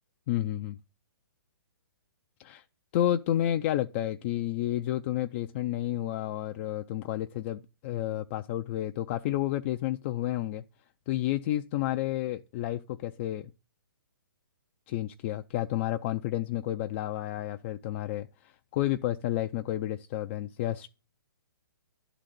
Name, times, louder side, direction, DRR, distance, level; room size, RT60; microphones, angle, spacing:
voice 1, 0.3-0.8 2.4-2.6 2.9-10.6 11.1-13.5 14.9-20.9, left 13 dB, 35° left, 0.4 m, -31 dB
11.0 x 3.9 x 7.5 m
hypercardioid pair, 130°, 12 cm